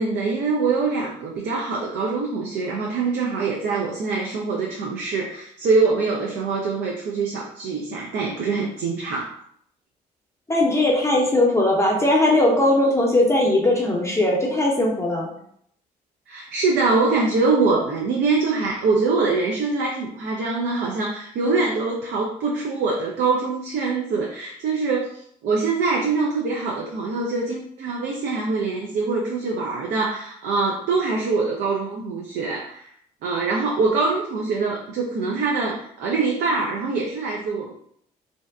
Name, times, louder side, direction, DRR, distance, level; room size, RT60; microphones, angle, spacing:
voice 1, 0.0-9.4 16.3-32.9 33.2-37.7, right 4 dB, 60° right, -1 dB, 0.5 m, -24 dB
voice 2, 10.5-15.3, left 1 dB, 15° left, -1 dB, 0.7 m, -19 dB
2.6 x 2.2 x 2.3 m, 0.67 s
hypercardioid pair, 45°, 19 cm